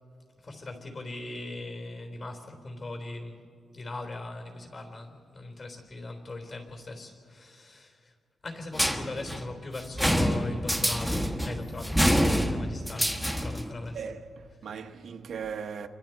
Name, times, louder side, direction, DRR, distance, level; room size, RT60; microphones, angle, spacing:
voice 1, 0.4-3.5 3.7-8.1 8.4-14.0, left 2 dB, 40° left, 3.7 m, -39 dB
sound 1, 8.7-13.7, equal, 5° left, 1.3 m, -27 dB
voice 2, 13.9-15.9, right 6 dB, 65° right, 1.1 m, -38 dB
29.0 x 25.0 x 4.6 m
wide cardioid pair, 160°, 0 cm